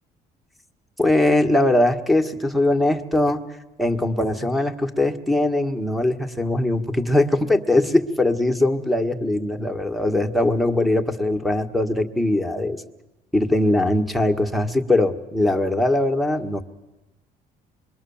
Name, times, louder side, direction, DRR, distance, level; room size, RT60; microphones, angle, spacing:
voice 1, 1.0-3.5 3.8-12.8 13.3-16.6, left 1 dB, ahead, 8 dB, 1.7 m, -21 dB
26.5 x 22.5 x 7.2 m, 1.0 s
cardioid pair, 110°, 17 cm